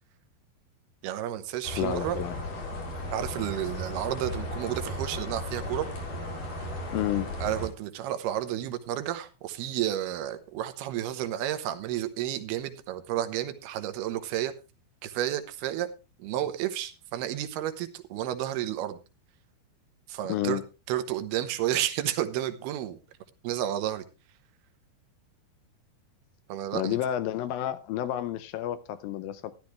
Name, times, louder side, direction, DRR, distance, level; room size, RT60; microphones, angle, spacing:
voice 1, 1.0-2.2 3.1-5.9 7.4-14.5 15.0-15.9 16.2-19.0 20.1-20.6 20.9-23.0 23.4-24.0 26.5-27.0, right 12 dB, 85° right, 2.9 m, -31 dB
sound 1, 1.6-7.7, left 1 dB, 55° left, 5.5 m, -35 dB
voice 2, 1.8-2.3 6.9-7.3 20.3-20.6 26.7-29.5, left 12 dB, 80° left, 2.3 m, -30 dB
13.5 x 12.0 x 3.2 m
omnidirectional pair, 4.6 m